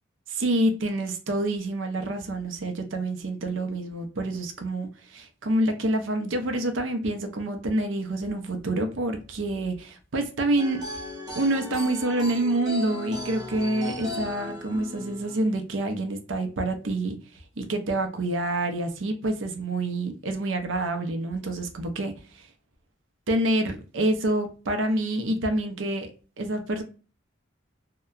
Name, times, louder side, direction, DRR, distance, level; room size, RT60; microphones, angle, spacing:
voice 1, 0.3-10.8 11.3-17.2 17.6-22.1 23.3-26.1 26.4-26.8, right 1 dB, 80° right, 0.6 m, -27 dB
sound 1, 10.6-15.6, left 2 dB, 20° right, 0.7 m, -36 dB
2.8 x 2.2 x 2.3 m
head